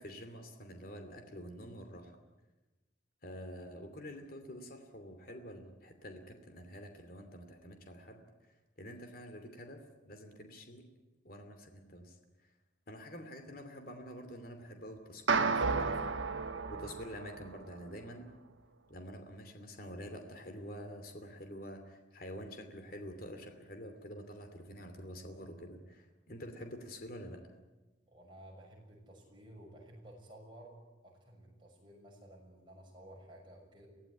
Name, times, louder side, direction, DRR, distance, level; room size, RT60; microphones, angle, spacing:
voice 1, 0.0-2.2 3.2-8.2 8.8-10.8 11.2-12.2 12.9-16.1 16.7-18.3 18.9-27.4, equal, 45° left, 6 dB, 2.7 m, -47 dB
sound 1, 15.3-17.8, right 4 dB, 80° right, 1.2 m, -32 dB
voice 2, 28.1-30.8 31.0-33.9, right 1 dB, 25° right, -1 dB, 6.4 m, -54 dB
24.0 x 16.5 x 9.7 m, 1.1 s
head